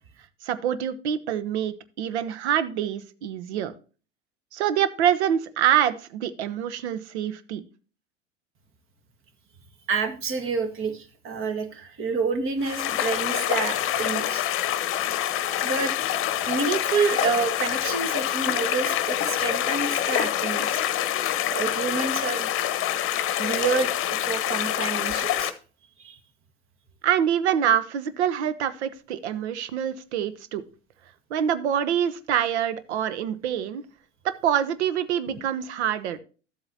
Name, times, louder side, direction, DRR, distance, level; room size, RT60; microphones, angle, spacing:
voice 1, 0.4-3.7 4.5-7.7 27.0-30.6 31.3-33.8 34.2-36.2, right 9 dB, 65° right, 14 dB, 1.0 m, -25 dB
voice 2, 9.9-14.4 15.6-15.9 16.5-20.8 21.5-22.5 23.4-25.5 26.0-26.2, right 5 dB, 35° right, 8 dB, 1.7 m, -28 dB
sound 1, 12.6-25.5, left 12 dB, 35° left, 1.0 m, -26 dB
13.0 x 7.8 x 2.8 m, 0.37 s
figure-of-eight pair, 80°, 36 cm